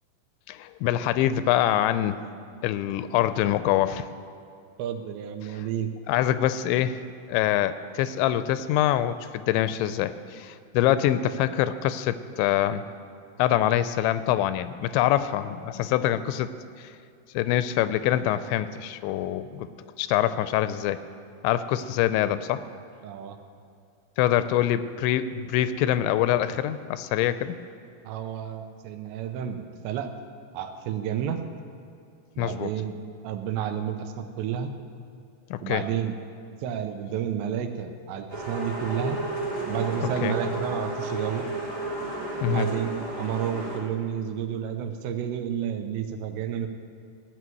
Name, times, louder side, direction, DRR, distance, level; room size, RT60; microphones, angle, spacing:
voice 1, 0.5-2.2 2.6-4.1 5.4-5.7 6.1-7.0 7.3-12.8 13.4-16.5 16.8-16.9 17.3-19.7 20.0-21.0 21.4-22.6 24.2-27.6 32.4-32.7 35.5-35.8 40.2-40.4 42.4-42.7, left 12 dB, 85° left, 13 dB, 2.8 m, -25 dB
voice 2, 4.8-5.9 23.0-23.4 28.0-30.1 30.5-31.4 32.4-33.0 33.2-34.8 35.6-36.1 36.6-39.2 39.7-41.5 42.4-46.7, right 9 dB, 80° right, 7 dB, 2.9 m, -31 dB
sound 1, 38.3-43.8, right 2 dB, 35° right, 0.6 m, -32 dB
17.5 x 6.2 x 9.2 m, 2.4 s
omnidirectional pair, 5.3 m